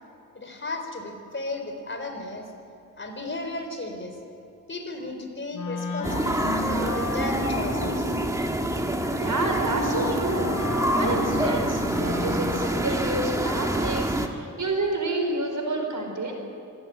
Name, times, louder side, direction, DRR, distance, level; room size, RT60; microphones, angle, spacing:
voice 1, 0.3-2.5 3.0-4.2 4.7-8.1, left 2 dB, 35° left, 4 dB, 4.1 m, -34 dB
Wind instrument woodwind instrument, 5.5-13.0, left 2 dB, 70° left, 3.6 m, -33 dB
sound 1, 6.0-14.3, right 1 dB, 10° right, 1.7 m, -27 dB
voice 2, 9.2-10.5 10.9-16.3, right 2 dB, 65° right, 2 dB, 5.0 m, -29 dB
26.0 x 17.0 x 9.7 m, 2.8 s
wide cardioid pair, 130°, 33 cm